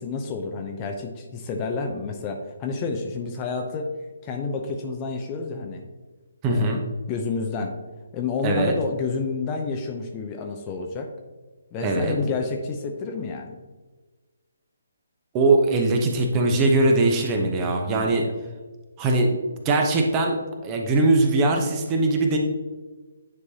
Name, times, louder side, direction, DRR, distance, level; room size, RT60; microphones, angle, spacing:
voice 1, 0.0-3.9 4.2-5.8 6.5-6.8 7.1-7.7 8.1-11.1 11.7-13.6 17.9-18.3, left 4 dB, 20° left, 3 dB, 0.6 m, -29 dB
voice 2, 6.4-6.8 8.4-8.7 11.8-12.1 15.3-18.2 19.0-19.3 19.6-20.4 20.6-22.4, right 2 dB, 20° right, 2 dB, 0.9 m, -21 dB
9.8 x 4.6 x 2.8 m, 1.3 s
figure-of-eight pair, 140°, 0 cm